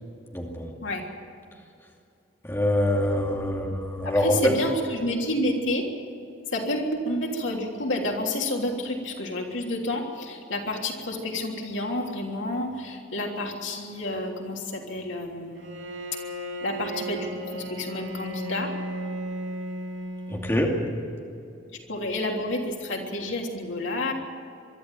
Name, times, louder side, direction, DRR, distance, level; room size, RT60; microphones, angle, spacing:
voice 1, 0.3-0.7 2.5-4.3 20.3-20.7, left 1 dB, 15° left, -1 dB, 2.7 m, -25 dB
voice 2, 4.0-5.8 6.5-15.7 16.6-18.7 21.9-24.1, left 1 dB, 85° left, 0 dB, 3.4 m, -29 dB
Bowed string instrument, 15.5-21.0, right 1 dB, 85° right, 5.0 m, -35 dB
23.5 x 13.0 x 9.2 m, 2.5 s
head